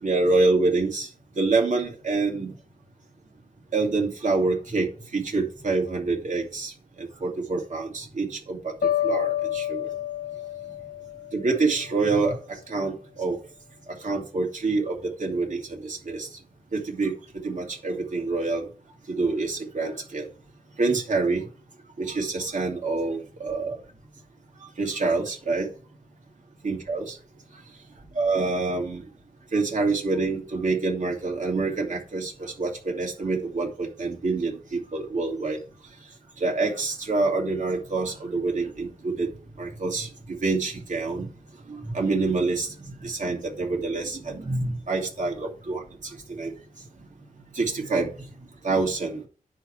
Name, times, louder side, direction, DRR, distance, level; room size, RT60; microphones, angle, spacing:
voice 1, 0.0-1.1 1.4-2.5 3.7-4.9 5.1-6.7 7.0-8.7 9.0-9.8 11.3-12.4 12.7-13.4 14.0-16.3 16.7-17.1 17.4-18.7 19.1-20.3 20.8-21.4 22.0-23.8 24.8-25.7 26.6-27.2 28.2-29.0 29.5-35.6 36.4-39.3 39.6-40.1 40.4-41.3 41.7-42.7 43.0-46.5 47.5-48.1 48.6-49.2, right 3 dB, 60° right, 0 dB, 2.7 m, -26 dB
sound 1, 8.8-11.9, left 11 dB, 75° left, 0.8 m, -29 dB
10.5 x 3.6 x 7.1 m, 0.38 s
wide cardioid pair, 105°, 14 cm